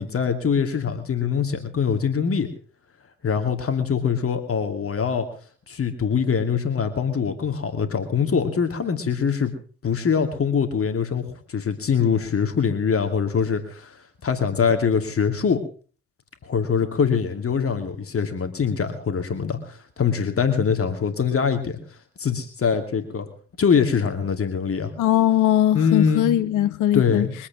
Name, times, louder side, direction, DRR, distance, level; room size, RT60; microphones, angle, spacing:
voice 1, 0.0-2.5 3.2-5.3 5.7-9.5 9.8-11.2 11.5-14.0 14.2-15.6 16.4-21.8 22.2-23.3 23.6-24.9 25.7-26.3 26.9-27.3, left 6 dB, 45° left, 2.6 m, -23 dB
voice 2, 25.0-27.3, left 12 dB, 70° left, 1.3 m, -20 dB
23.5 x 8.6 x 6.3 m
hypercardioid pair, 45°, 33 cm